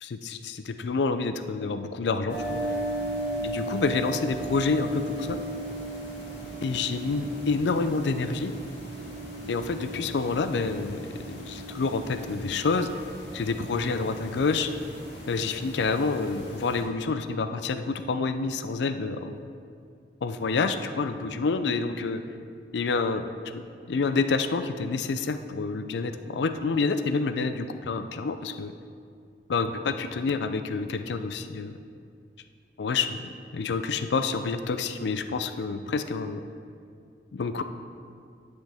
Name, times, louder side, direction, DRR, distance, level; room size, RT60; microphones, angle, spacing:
voice 1, 0.0-2.6 3.4-5.4 6.6-8.5 9.5-12.9 13.3-14.7 15.3-19.4 20.2-22.2 22.7-23.3 23.5-23.6 23.9-28.7 29.5-31.8 32.8-36.4 37.3-37.6, left 4 dB, 65° left, 10 dB, 0.4 m, -28 dB
sound 1, 2.3-16.8, right 1 dB, 85° left, 1.8 m, -36 dB
9.7 x 6.3 x 3.4 m, 2.3 s
head